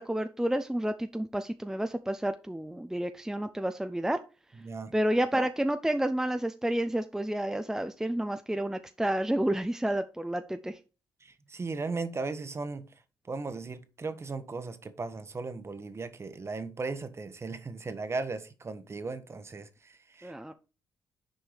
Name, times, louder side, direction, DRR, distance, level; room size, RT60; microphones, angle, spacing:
voice 1, 0.0-4.2 4.9-10.7 20.2-20.5, right 1 dB, 5° right, 0.6 m, -30 dB
voice 2, 4.5-4.9 11.2-12.9 13.3-20.5, right 3 dB, 35° right, 1.1 m, -37 dB
6.4 x 4.6 x 5.0 m
cardioid pair, 70°, 8 cm